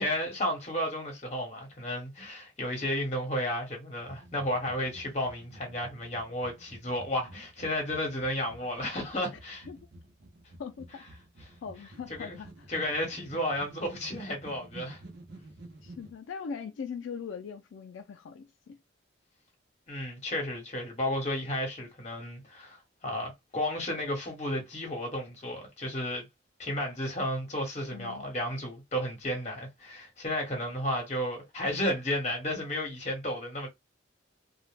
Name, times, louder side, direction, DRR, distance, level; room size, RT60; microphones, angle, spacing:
voice 1, 0.0-9.7 12.1-12.3 12.7-15.0 19.9-26.2 26.6-33.7, left 1 dB, 35° left, 1.0 m, -33 dB
sound 1, 4.0-16.1, right 2 dB, 60° right, 0.6 m, -51 dB
voice 2, 10.6-11.0 11.6-12.7 15.8-18.8 27.9-28.2, left 6 dB, 85° left, 0.3 m, -40 dB
2.3 x 2.1 x 3.1 m
head